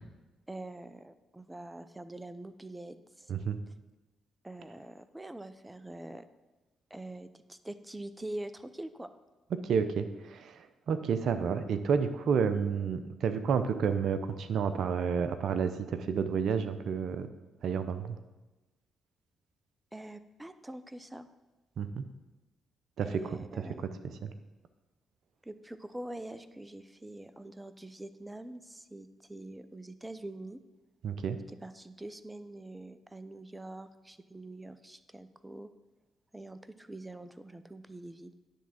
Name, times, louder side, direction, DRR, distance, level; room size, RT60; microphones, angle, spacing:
voice 1, 0.5-3.3 4.4-6.2 6.9-9.1 19.9-21.3 23.0-23.8 25.4-30.6 31.6-35.7 36.3-38.3, right 1 dB, 15° right, 12 dB, 0.6 m, -44 dB
voice 2, 3.3-3.6 9.5-17.3 17.6-18.2 21.8-22.0 23.0-23.9 24.2-24.3 31.0-31.4, right 6 dB, 70° right, 10 dB, 0.6 m, -30 dB
10.0 x 3.6 x 7.2 m, 1.1 s
hypercardioid pair, 50°, 0 cm